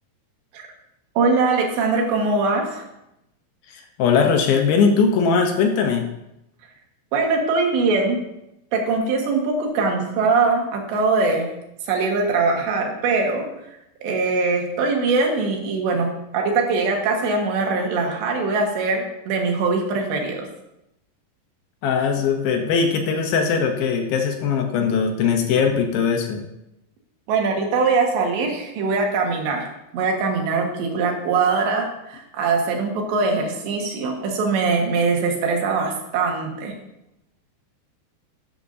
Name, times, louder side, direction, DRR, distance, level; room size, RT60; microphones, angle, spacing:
voice 1, 1.2-2.8 7.1-8.2 8.7-11.4 11.9-13.5 14.0-20.5 27.3-29.7 29.9-36.7, right 4 dB, 90° right, 1 dB, 3.8 m, -22 dB
voice 2, 3.7-6.1 21.8-26.4, left 5 dB, 70° left, 3 dB, 2.5 m, -20 dB
13.0 x 10.0 x 2.8 m, 0.85 s
omnidirectional pair, 4.8 m